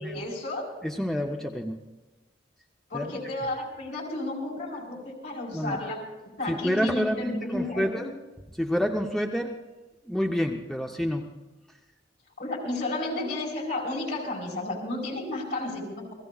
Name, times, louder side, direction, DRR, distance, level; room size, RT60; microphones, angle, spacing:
voice 1, 0.0-0.6 2.9-6.0 6.4-8.1 12.4-16.1, left 2 dB, 60° left, -1 dB, 4.5 m, -32 dB
voice 2, 0.8-1.8 2.9-3.1 5.5-5.8 6.4-8.1 8.6-9.6 10.1-11.3, equal, ahead, 2 dB, 0.6 m, -28 dB
28.5 x 16.5 x 2.4 m, 1.2 s
head